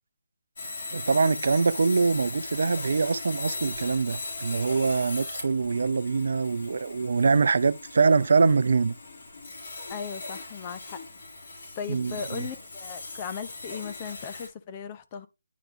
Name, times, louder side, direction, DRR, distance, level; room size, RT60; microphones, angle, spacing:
Sawing, 0.6-14.5, left 3 dB, 55° left, 2.8 m, -39 dB
voice 1, 0.9-9.0 11.9-12.5, right 4 dB, 55° right, 0.5 m, -24 dB
voice 2, 9.9-11.0 11.8-15.3, left 7 dB, 25° left, 0.7 m, -37 dB
9.4 x 3.4 x 3.7 m
figure-of-eight pair, 145°, 0 cm